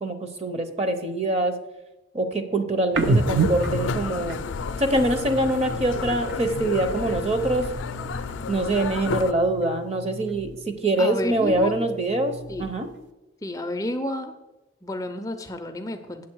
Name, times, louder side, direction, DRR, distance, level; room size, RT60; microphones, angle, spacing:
voice 1, 0.0-1.5 2.1-4.4 4.8-7.7 8.5-12.9, right 1 dB, 30° right, 7 dB, 0.7 m, -24 dB
sound 1, 2.9-6.5 6.8-8.6 8.9-10.8 11.1-13.0, right 3 dB, 70° right, 0.6 m, -31 dB
sound 2, 3.0-9.3, left 4 dB, 80° left, 0.4 m, -31 dB
voice 2, 11.0-11.8 12.5-12.7 13.4-14.3 14.8-16.3, left 1 dB, 15° left, 6 dB, 0.4 m, -31 dB
8.5 x 6.9 x 4.5 m, 1.0 s
head